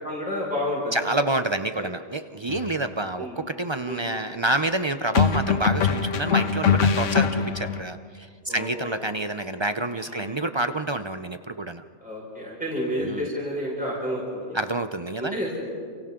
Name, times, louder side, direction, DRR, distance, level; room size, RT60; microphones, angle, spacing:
voice 1, 0.0-1.0 1.8-1.9 3.2-3.4 3.9-4.1 8.5-9.1 10.0-10.5 12.0-14.6 15.2-15.7, equal, 5° right, -5 dB, 5.5 m, -30 dB
voice 2, 0.9-11.8 13.0-13.3 14.5-15.4, right 2 dB, 40° right, 10 dB, 0.4 m, -28 dB
sound 1, 2.5-2.7 5.1-7.8, left 6 dB, 85° left, 1.3 m, -22 dB
29.0 x 29.0 x 3.8 m, 2.2 s
omnidirectional pair, 1.2 m